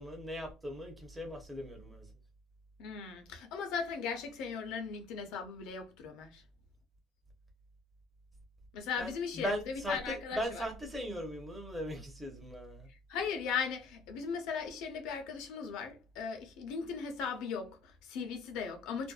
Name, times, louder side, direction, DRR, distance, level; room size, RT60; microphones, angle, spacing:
voice 1, 0.0-2.0 9.0-9.1 9.4-12.8, equal, 10° right, 0.8 m, -38 dB
voice 2, 2.8-6.4 8.7-10.7 13.1-19.1, left 6 dB, 80° left, 0.7 m, -38 dB
2.5 x 2.1 x 2.3 m
cardioid pair, 130°, 0 cm